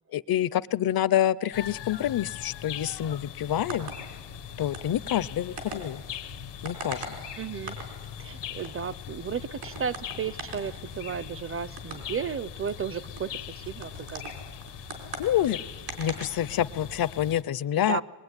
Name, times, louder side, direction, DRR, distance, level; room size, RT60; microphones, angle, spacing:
voice 1, 0.1-3.9 4.6-6.0 6.6-7.2 15.2-15.6 16.0-18.0, left 11 dB, 60° left, 19 dB, 0.7 m, -27 dB
sound 1, 1.5-17.4, left 11 dB, 90° left, 1.2 m, -41 dB
sound 2, 3.4-17.0, right 3 dB, 75° right, 4.9 m, -43 dB
voice 2, 7.4-7.8 8.2-14.3 17.8-18.0, right 7 dB, 35° right, 20 dB, 0.6 m, -34 dB
22.5 x 22.0 x 9.8 m, 1.5 s
cardioid pair, 105°, 41 cm